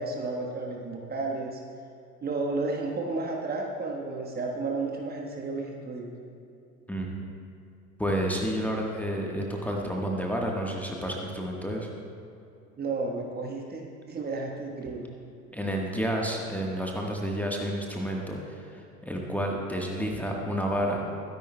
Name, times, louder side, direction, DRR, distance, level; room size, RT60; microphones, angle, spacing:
voice 1, 0.0-1.6 2.2-6.1 12.8-15.0, right 3 dB, 20° right, 0 dB, 1.3 m, -32 dB
voice 2, 6.9-7.2 8.0-11.9 15.5-21.0, equal, 5° left, -1 dB, 1.3 m, -30 dB
21.5 x 10.5 x 2.2 m, 2.6 s
figure-of-eight pair, 80°, 45 cm